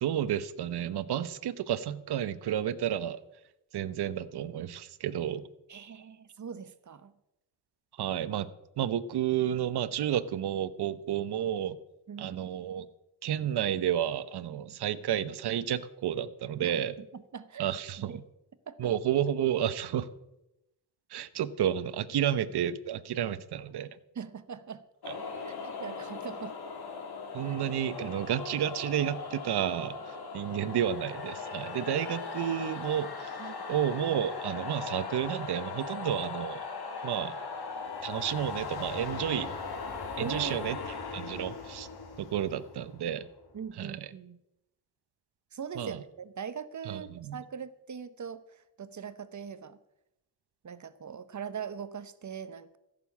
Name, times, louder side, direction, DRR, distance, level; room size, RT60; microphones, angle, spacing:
voice 1, 0.0-3.2 3.7-5.5 8.0-8.5 8.8-11.8 12.2-12.9 13.2-17.0 17.6-18.2 18.8-20.1 21.1-23.9 25.1-25.2 27.3-33.3 33.7-36.6 37.0-37.4 38.0-39.5 40.2-40.8 41.1-41.9 42.2-43.3 43.8-44.1 45.8-46.0 46.9-47.4, right 10 dB, 75° right, 15 dB, 0.9 m, -31 dB
voice 2, 5.7-7.1 12.1-12.4 16.6-17.7 18.1-18.2 18.7-18.9 24.1-24.8 25.4-26.5 27.4-27.6 33.4-33.5 40.2-40.8 43.5-44.4 45.5-49.8 50.6-52.8, right 7 dB, 45° right, 14 dB, 0.9 m, -41 dB
sound 1, 25.0-43.6, left 4 dB, 70° left, 3.0 m, -39 dB
14.5 x 6.9 x 8.4 m, 0.88 s
cardioid pair, 70°, 39 cm